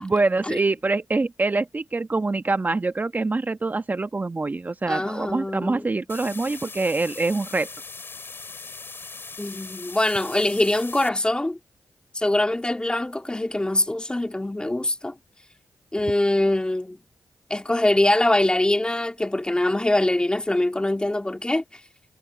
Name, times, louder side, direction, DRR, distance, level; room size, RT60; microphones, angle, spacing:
voice 1, 0.0-7.7, right 3 dB, 35° right, 1.1 m, -25 dB
voice 2, 4.9-6.0 9.4-11.6 12.1-15.1 15.9-17.0 17.5-21.8, left 1 dB, 20° left, 2.5 m, -23 dB
sound 1, 6.1-11.1, left 4 dB, 50° left, 3.5 m, -39 dB
supercardioid pair, 45°, 5 cm